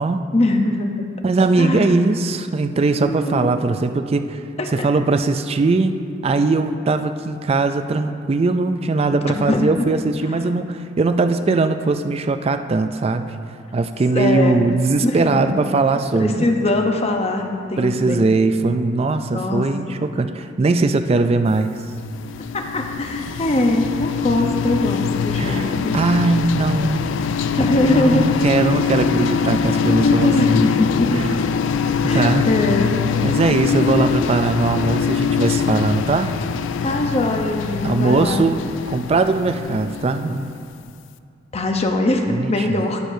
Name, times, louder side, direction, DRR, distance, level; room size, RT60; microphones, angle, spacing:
voice 1, 0.3-1.1 1.5-2.0 2.9-3.4 4.6-4.9 9.2-9.9 10.2-10.3 14.1-14.6 15.0-15.6 16.1-18.3 19.3-20.0 22.5-26.0 27.6-28.4 29.4-29.5 29.9-31.2 32.0-33.0 33.7-34.2 36.8-38.5 41.5-43.0, left 1 dB, 35° left, 3 dB, 0.8 m, -22 dB
voice 2, 1.2-4.4 4.7-13.3 13.7-16.5 17.8-21.7 25.3-27.0 27.8-30.7 31.1-31.4 31.8-32.5 33.2-36.4 37.8-38.6 38.9-40.5 42.3-42.5, right 3 dB, 30° right, 9 dB, 0.3 m, -20 dB
sound 1, 21.8-40.8, left 6 dB, 70° left, 0.3 m, -23 dB
17.5 x 6.6 x 2.7 m, 2.4 s
head